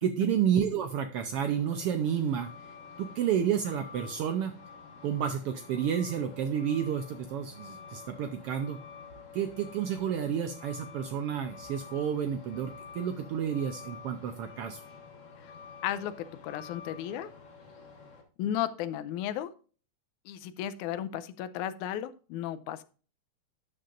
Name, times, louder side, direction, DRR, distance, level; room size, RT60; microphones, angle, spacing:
voice 1, 0.0-2.5 3.0-4.5 5.0-8.8 9.3-14.8, right 8 dB, 90° right, 7 dB, 1.2 m, -30 dB
Truck, 1.5-18.2, left 5 dB, 40° left, 1.2 m, -49 dB
voice 2, 15.8-17.3 18.4-19.5 20.3-22.8, left 11 dB, 90° left, 13 dB, 2.0 m, -34 dB
12.5 x 6.6 x 2.5 m, 0.37 s
omnidirectional pair, 3.4 m